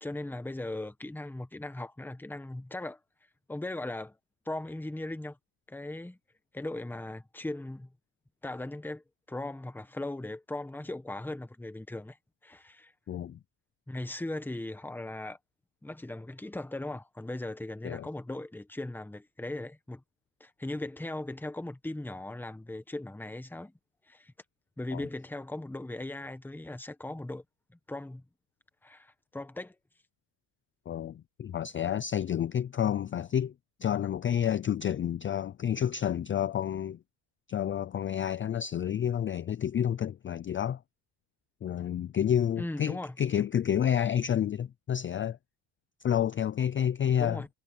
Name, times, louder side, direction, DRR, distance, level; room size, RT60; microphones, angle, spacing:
voice 1, 0.0-3.0 3.5-4.2 4.4-5.4 5.7-6.2 6.5-7.9 8.4-12.2 12.4-12.9 13.9-15.4 15.8-20.0 20.4-23.7 24.1-24.3 24.8-27.4 27.9-28.2 28.8-29.8 42.6-43.1 47.2-47.5, left 2 dB, 5° left, 1.2 m, -38 dB
voice 2, 13.1-13.4 17.8-18.1 24.9-25.1 30.9-33.5 33.8-37.0 37.5-40.8 41.6-45.4 46.0-47.4, left 9 dB, 25° left, 0.4 m, -29 dB
cardioid pair, 140°, 48 cm